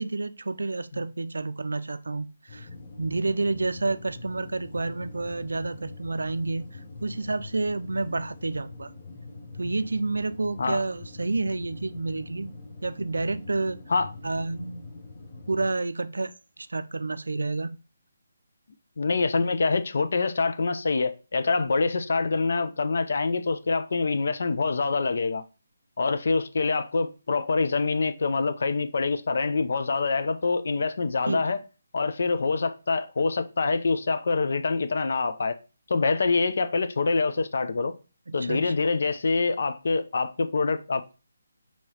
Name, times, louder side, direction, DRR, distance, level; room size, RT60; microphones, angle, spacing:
voice 1, 0.0-2.7 3.0-8.9 9.6-12.5 12.8-13.8 14.2-14.9 15.5-17.8 31.3-31.6 38.3-38.7, right 3 dB, 85° right, 0.3 m, -29 dB
sound 1, 2.5-15.7, left 3 dB, 35° left, 0.8 m, -43 dB
voice 2, 19.0-25.4 26.0-31.6 31.9-35.6 35.9-37.9 38.3-41.1, left 4 dB, 65° left, 0.4 m, -25 dB
4.6 x 2.9 x 2.8 m
hypercardioid pair, 160°, 0 cm